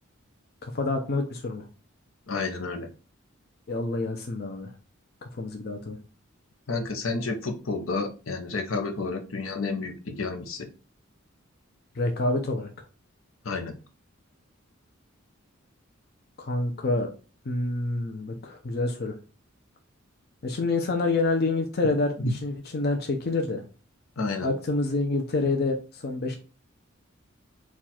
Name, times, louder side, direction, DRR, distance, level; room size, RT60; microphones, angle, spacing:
voice 1, 0.6-1.7 3.7-4.7 5.2-6.0 12.0-12.7 16.4-17.1 17.5-19.1 20.4-23.6 24.4-26.4, left 2 dB, 50° left, 4 dB, 0.6 m, -27 dB
voice 2, 2.3-2.9 6.7-10.7 13.4-13.7 22.2-22.3 24.2-24.5, left 3 dB, 80° left, 5 dB, 0.8 m, -30 dB
4.4 x 2.4 x 4.2 m, 0.34 s
head